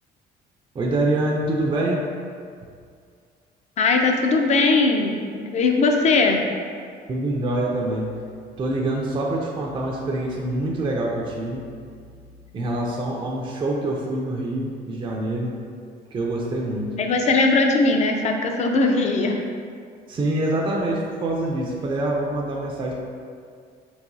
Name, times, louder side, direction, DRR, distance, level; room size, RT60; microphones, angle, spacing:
voice 1, 0.7-2.0 7.1-8.1 8.6-11.6 12.5-15.5 16.1-17.0 20.1-22.9, right 1 dB, 30° right, -2 dB, 0.5 m, -25 dB
voice 2, 3.8-6.5 17.0-19.4, left 3 dB, 45° left, 3 dB, 0.5 m, -20 dB
4.7 x 3.2 x 2.6 m, 2.2 s
cardioid pair, 110°, 17 cm